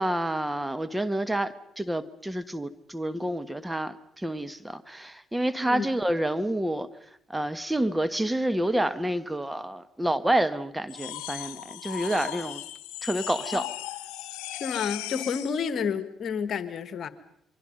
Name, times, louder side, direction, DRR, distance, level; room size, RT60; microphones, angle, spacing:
voice 1, 0.0-6.9 7.3-12.6 13.0-13.7, right 1 dB, 10° right, 12 dB, 1.5 m, -28 dB
sound 1, 10.9-15.6, left 15 dB, 85° left, 1.0 m, -37 dB
voice 2, 14.6-17.1, left 6 dB, 60° left, 12 dB, 1.7 m, -30 dB
28.0 x 23.5 x 5.5 m, 0.70 s
supercardioid pair, 55°, 0 cm